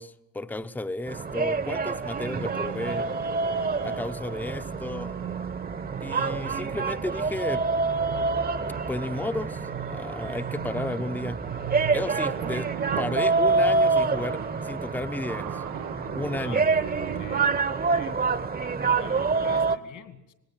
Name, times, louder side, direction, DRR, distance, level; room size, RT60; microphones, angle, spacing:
voice 1, 0.0-3.1 3.8-5.1 6.0-7.6 8.9-9.6 9.9-11.4 11.9-12.7 13.0-15.6 16.1-16.6, left 2 dB, 5° left, 10 dB, 0.8 m, -33 dB
sound 1, 1.1-19.8, right 4 dB, 25° right, 1.1 m, -27 dB
sound 2, 2.0-4.2 4.5-17.6, right 13 dB, 80° right, 0.9 m, -38 dB
voice 2, 6.1-6.4 16.3-16.6 17.0-17.5 17.9-18.2 18.8-20.3, left 9 dB, 65° left, 11 dB, 2.5 m, -46 dB
18.5 x 17.5 x 9.0 m, 0.90 s
cardioid pair, 95°, 33 cm